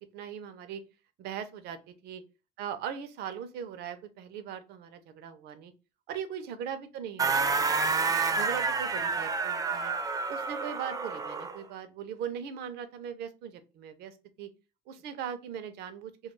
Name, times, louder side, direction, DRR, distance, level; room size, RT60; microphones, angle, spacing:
voice 1, 0.1-0.8 1.2-1.8 2.0-2.2 2.6-5.7 6.1-7.5 7.8-7.9 8.3-9.9 10.3-14.5 14.9-16.1, right 8 dB, 75° right, 9 dB, 0.5 m, -39 dB
sound 1, 7.2-11.6, right 4 dB, 20° right, 0.3 m, -29 dB
2.3 x 2.2 x 3.0 m, 0.30 s
cardioid pair, 110°, 17 cm